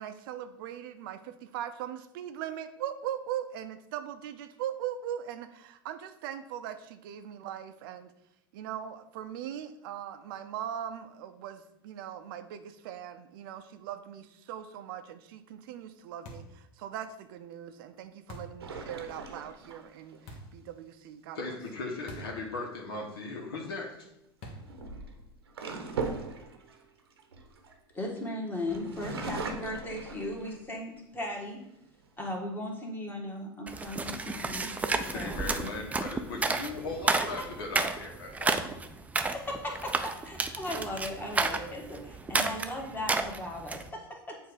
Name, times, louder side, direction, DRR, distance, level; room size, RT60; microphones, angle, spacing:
voice 1, 0.0-8.1 8.5-21.4, right 10 dB, 60° right, 9 dB, 0.5 m, -40 dB
sound 1, 16.2-16.6 18.3-18.6 20.3-20.6 22.1-22.4 22.7-22.8 24.4-24.8, left 1 dB, 50° left, 1.3 m, -45 dB
sound 2, 18.6-20.2 23.1-23.4 24.4-28.2 28.7-30.8 31.3-31.4 31.8-32.4, right 4 dB, 85° right, 0.8 m, -39 dB
voice 2, 21.3-24.0 34.9-38.7, left 3 dB, 70° left, -1 dB, 1.1 m, -38 dB
voice 3, 27.9-31.6 32.2-34.8 35.1-35.8 37.2-37.5 39.2-44.3, left 1 dB, 15° left, 0 dB, 1.5 m, -37 dB
sound 3, 33.7-43.9, right 3 dB, 10° right, 0.4 m, -31 dB
7.3 x 2.6 x 4.9 m, 0.83 s
hypercardioid pair, 90°, 13 cm